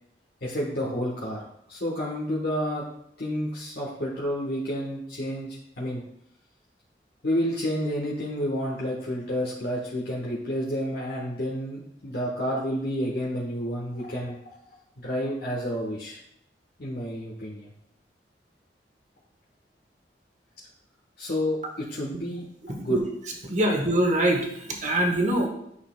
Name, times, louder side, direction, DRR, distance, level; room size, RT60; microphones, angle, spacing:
voice 1, 0.4-1.4 1.7-2.8 3.2-6.0 7.2-14.4 15.0-16.2 16.8-17.7 21.2-22.4 22.8-23.0, equal, 65° left, -5 dB, 1.3 m, -30 dB
voice 2, 22.6-23.1 23.4-25.5, right 1 dB, 45° right, 2 dB, 1.3 m, -24 dB
9.5 x 6.1 x 2.3 m, 0.74 s
head